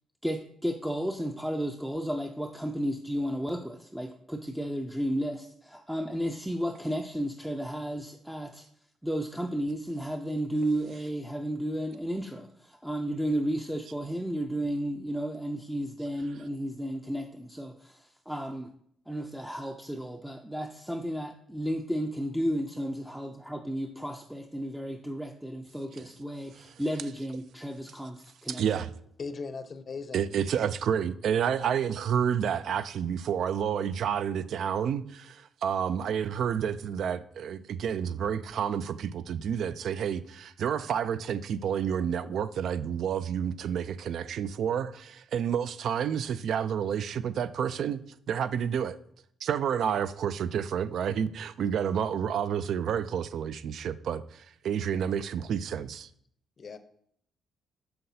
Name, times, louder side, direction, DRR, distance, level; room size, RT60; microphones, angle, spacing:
voice 1, 0.2-8.7 9.0-18.7 19.1-28.6, equal, 5° right, 0.4 m, -33 dB
voice 2, 28.5-28.9 30.1-48.0 48.3-49.0 49.4-56.1, right 8 dB, 70° right, 0.3 m, -30 dB
voice 3, 29.2-30.3 56.6-56.8, left 4 dB, 45° left, 0.6 m, -38 dB
6.6 x 5.7 x 2.7 m
cardioid pair, 90°, 0 cm